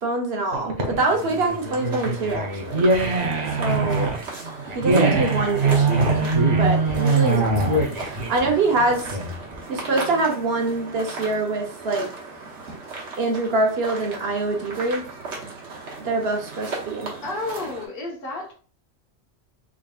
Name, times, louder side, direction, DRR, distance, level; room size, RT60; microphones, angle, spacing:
voice 1, 0.0-2.9 3.6-4.1 4.7-6.3 6.6-9.2 9.7-12.1 13.2-15.0 16.0-17.2, right 3 dB, 60° right, 2 dB, 1.1 m, -25 dB
sound 1, 0.5-9.6, right 3 dB, 40° right, 0.7 m, -22 dB
sound 2, 1.0-17.9, right 3 dB, 75° right, 1.4 m, -37 dB
voice 2, 17.2-18.5, left 2 dB, 55° left, 0 dB, 1.3 m, -31 dB
3.8 x 3.4 x 2.4 m, 0.40 s
omnidirectional pair, 1.2 m